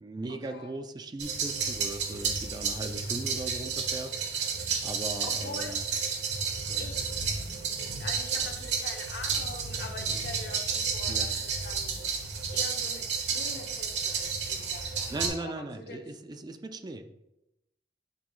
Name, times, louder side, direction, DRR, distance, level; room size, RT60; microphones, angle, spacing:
voice 1, 0.0-4.5 4.8-5.8 6.7-6.8 11.1-11.3 15.1-17.1, right 2 dB, 25° right, 8 dB, 0.3 m, -38 dB
sound 1, 1.2-15.3, right 5 dB, 70° right, 1.1 m, -31 dB
voice 2, 5.2-5.8 6.8-7.0 7.8-12.0 12.5-16.0, left 3 dB, 65° left, 3 dB, 0.9 m, -44 dB
8.2 x 3.9 x 3.1 m, 0.91 s
head